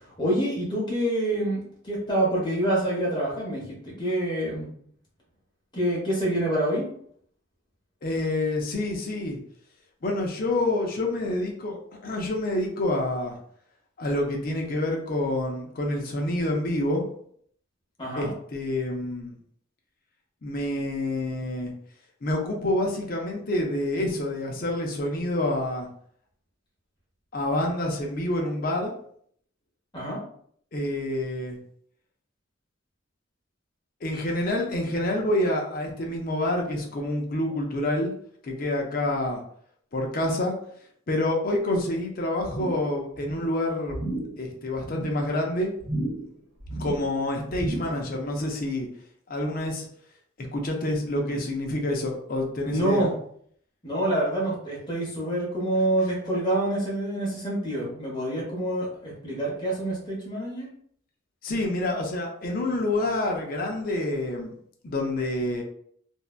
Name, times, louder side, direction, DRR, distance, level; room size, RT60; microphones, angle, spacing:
voice 1, 0.2-4.7 5.7-6.8 18.0-18.3 29.9-30.2 52.6-53.1 53.8-60.7, right 1 dB, 20° left, -5 dB, 0.9 m, -27 dB
voice 2, 8.0-9.4 10.0-13.4 14.0-17.0 18.1-19.4 20.4-21.7 22.2-25.9 27.3-28.9 30.7-31.6 34.0-38.1 38.4-39.4 39.9-40.5 41.1-44.0 44.4-45.7 46.7-48.9 49.3-49.9 50.4-53.1 61.4-64.5 64.8-65.6, left 1 dB, 45° left, 1 dB, 0.5 m, -27 dB
sound 1, 42.4-42.9 43.2-43.5 43.9-44.4 44.7-45.2 45.8-46.3 46.6-47.1 47.5-48.0 48.4-48.5, right 1 dB, 55° right, 1.0 m, -33 dB
2.6 x 2.2 x 2.3 m, 0.63 s
head